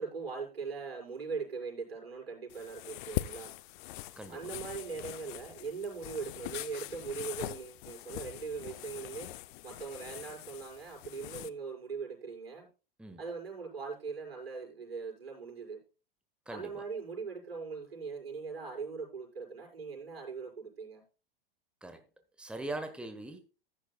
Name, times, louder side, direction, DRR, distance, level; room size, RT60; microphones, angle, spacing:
voice 1, 0.0-3.5 4.3-9.3 9.6-12.7 13.2-15.8 16.5-21.0, right 5 dB, 85° right, 5.5 m, -40 dB
sound 1, 2.5-11.5, left 16 dB, 55° left, 0.7 m, -42 dB
voice 2, 16.5-16.8 21.8-22.0 22.4-23.4, right 2 dB, 5° right, 1.4 m, -41 dB
14.5 x 10.5 x 2.3 m
hypercardioid pair, 100°, 30 cm